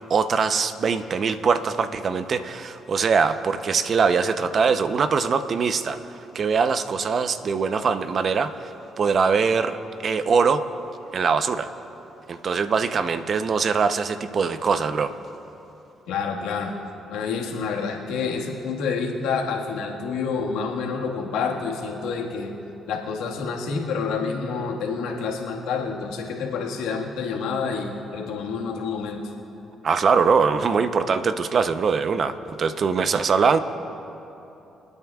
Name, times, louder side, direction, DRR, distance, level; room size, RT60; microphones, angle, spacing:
voice 1, 0.1-10.6 11.1-11.7 12.3-15.1 29.8-33.6, right 5 dB, 50° right, 10 dB, 0.7 m, -22 dB
voice 2, 16.1-16.7 17.1-22.5 22.9-29.2, left 5 dB, 85° left, 0 dB, 1.7 m, -28 dB
27.0 x 9.3 x 2.4 m, 3.0 s
supercardioid pair, 65°, 0 cm